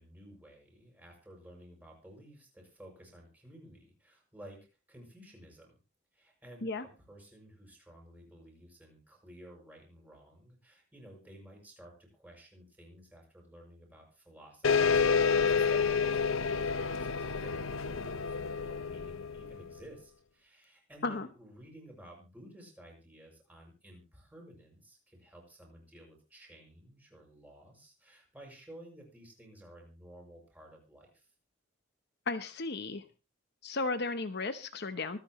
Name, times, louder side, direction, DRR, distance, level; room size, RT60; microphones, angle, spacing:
voice 1, 0.0-4.6 4.9-5.8 6.1-31.3, right 1 dB, 10° right, 0 dB, 6.6 m, -54 dB
sound 1, 14.6-19.7, left 5 dB, 85° left, 0.8 m, -29 dB
voice 2, 32.3-33.0 33.6-35.2, left 3 dB, 55° left, 10 dB, 0.9 m, -34 dB
24.5 x 9.5 x 3.1 m, 0.32 s
head